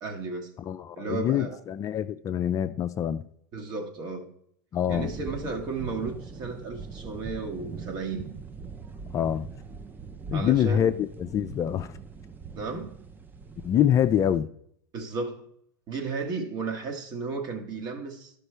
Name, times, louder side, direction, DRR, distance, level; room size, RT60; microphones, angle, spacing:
voice 1, 0.0-0.5 0.9-1.6 3.5-4.3 4.9-8.3 10.3-10.9 12.5-13.0 14.9-15.5 15.9-18.3, right 4 dB, 45° right, 1.5 m, -34 dB
voice 2, 0.6-3.2 4.7-5.1 9.1-9.5 10.3-11.9 13.6-14.5, left 10 dB, 30° left, 0.4 m, -25 dB
sound 1, 4.9-14.4, right 5 dB, 20° right, 0.5 m, -42 dB
11.5 x 5.3 x 3.3 m
hypercardioid pair, 105°, 10 cm